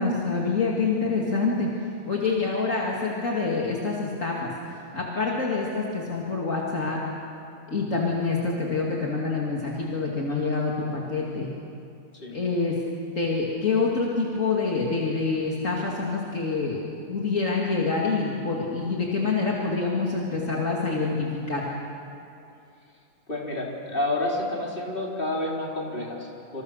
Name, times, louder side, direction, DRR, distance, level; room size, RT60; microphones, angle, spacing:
voice 1, 0.0-1.7 2.1-7.0 7.7-11.5 12.3-12.7 13.1-16.8 17.1-21.7, left 4 dB, 60° left, -3 dB, 2.9 m, -26 dB
voice 2, 23.3-26.6, left 1 dB, 35° left, -2 dB, 4.3 m, -29 dB
27.5 x 27.0 x 6.6 m, 2.6 s
omnidirectional pair, 1.5 m